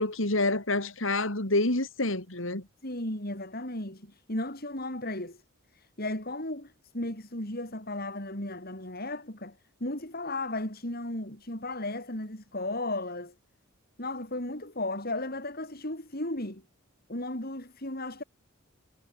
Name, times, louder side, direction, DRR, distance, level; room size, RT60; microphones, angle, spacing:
voice 1, 0.0-2.6, left 2 dB, 75° left, 4.6 m, -27 dB
voice 2, 2.8-5.4 5.7-13.3 14.0-16.6 17.1-18.2, left 1 dB, 50° left, 7.3 m, -35 dB
head